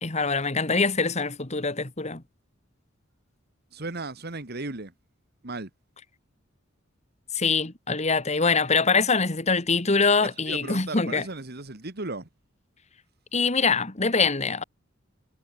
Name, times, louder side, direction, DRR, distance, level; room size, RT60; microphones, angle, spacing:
voice 1, 0.0-2.2 7.3-11.3 13.3-14.6, left 4 dB, 35° left, 1.9 m, -24 dB
voice 2, 3.7-4.9 5.4-5.7 10.5-12.3, right 2 dB, 50° right, 2.1 m, -35 dB
head